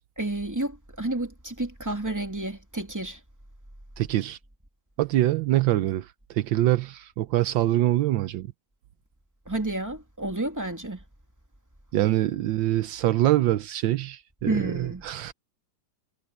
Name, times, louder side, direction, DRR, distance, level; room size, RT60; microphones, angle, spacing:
voice 1, 0.2-3.2 9.5-11.0 14.5-15.0, right 2 dB, 10° right, 2.8 m, -30 dB
voice 2, 4.0-4.4 5.0-8.5 11.9-15.3, right 14 dB, 80° right, 1.4 m, -24 dB
omnidirectional pair, 2.1 m